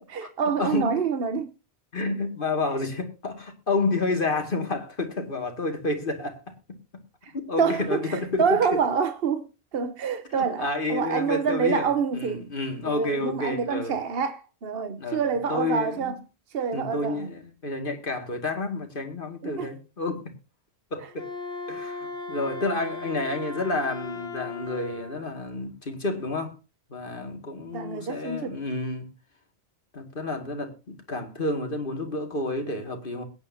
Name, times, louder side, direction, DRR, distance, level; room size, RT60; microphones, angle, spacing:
voice 1, 0.1-1.5 7.2-7.3 7.6-12.5 12.8-16.2 16.5-17.3 19.4-19.7 27.7-28.6, right 6 dB, 60° right, 1.2 m, -27 dB
voice 2, 0.6-1.0 1.9-6.8 7.5-8.8 10.4-13.9 15.0-15.2 15.5-16.2 16.7-20.3 20.9-21.4 21.7-26.5 26.9-29.1 29.9-33.2, left 2 dB, 55° left, 2.4 m, -30 dB
Wind instrument woodwind instrument, 21.1-25.2, left 4 dB, 75° left, 2.1 m, -37 dB
21.5 x 9.6 x 2.8 m
omnidirectional pair, 1.1 m